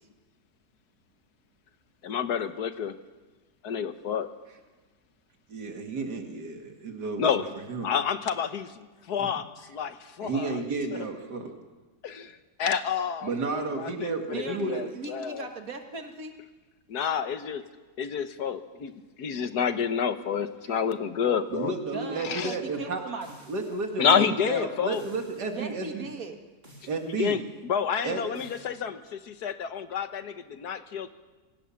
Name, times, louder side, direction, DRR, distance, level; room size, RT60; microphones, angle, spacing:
voice 1, 2.0-2.9 3.6-4.3 7.2-7.4 7.8-10.6 12.0-12.3 12.6-15.5 16.9-17.6 18.0-18.9 19.2-21.7 22.2-22.5 24.0-25.0 27.2-31.1, left 7 dB, 75° left, 10 dB, 1.7 m, -29 dB
voice 2, 5.5-7.4 7.7-7.9 9.2-9.3 10.2-11.5 13.2-14.8 21.5-23.0 23.5-26.1 26.9-27.4 28.0-28.2, right 3 dB, 85° right, 3 dB, 2.6 m, -32 dB
voice 3, 14.3-16.3 21.9-23.4 25.5-26.4, right 3 dB, 60° right, 5 dB, 2.3 m, -38 dB
sound 1, 23.2-24.0 24.9-25.6 26.6-27.2 28.3-28.7, equal, 35° right, 4.0 m, -53 dB
26.0 x 17.0 x 7.1 m, 1.2 s
omnidirectional pair, 1.7 m